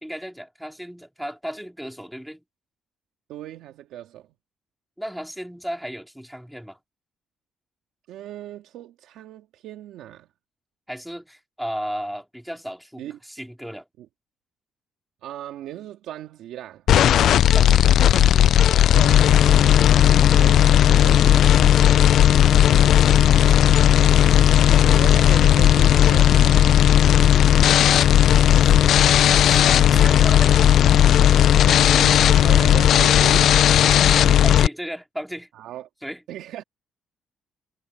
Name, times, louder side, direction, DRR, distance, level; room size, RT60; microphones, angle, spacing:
voice 1, 0.0-2.4 5.0-6.8 10.9-13.9 17.5-18.5 22.7-23.7 24.4-24.7 28.6-28.7 29.2-30.6 34.0-35.5 36.0-36.2, equal, ahead, 3.0 m, -35 dB
voice 2, 3.3-4.3 8.1-10.3 13.0-13.2 14.0-14.1 15.2-16.9 18.8-22.1 24.8-27.3 30.6-30.7 31.6-33.5 35.5-35.9 36.3-36.6, right 12 dB, 85° right, 2.2 m, -37 dB
sound 1, 16.9-34.7, left 10 dB, 70° left, 0.5 m, -15 dB
cardioid pair, 90°, 0 cm